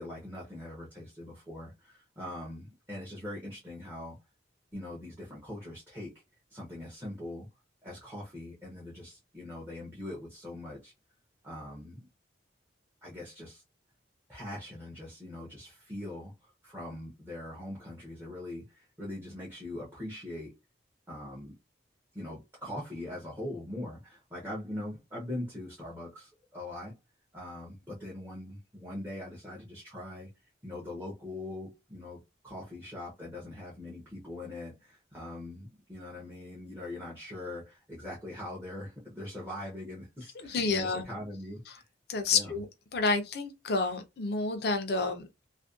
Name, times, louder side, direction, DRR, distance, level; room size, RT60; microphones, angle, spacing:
voice 1, 0.0-4.2 4.7-6.2 6.5-7.5 7.8-10.9 11.4-12.1 13.0-13.6 14.3-20.6 21.1-21.6 22.1-27.0 27.3-30.3 30.6-32.2 32.4-41.8 42.3-42.5, left 1 dB, 15° right, 0.6 m, -42 dB
voice 2, 40.4-41.0 42.1-42.7 42.9-45.3, left 4 dB, 55° left, 0.5 m, -29 dB
2.5 x 2.1 x 2.4 m
head